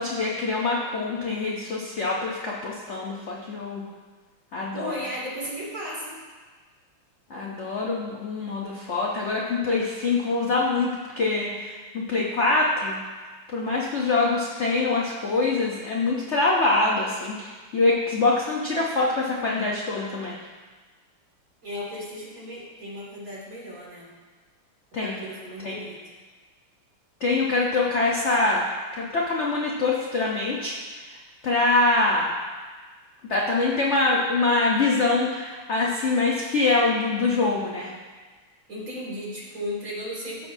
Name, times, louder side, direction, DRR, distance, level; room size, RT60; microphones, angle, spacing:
voice 1, 0.0-3.8 4.5-4.9 7.3-10.9 11.2-13.0 13.5-20.3 24.9-25.2 25.6-25.8 27.2-28.6 29.0-30.7 31.4-32.3 33.3-37.9, left 3 dB, 60° left, -3 dB, 0.7 m, -24 dB
voice 2, 4.7-6.2 21.6-24.1 25.0-26.1 38.7-40.5, equal, 40° right, -6 dB, 2.7 m, -35 dB
14.5 x 6.1 x 2.7 m, 1.4 s
omnidirectional pair, 2.4 m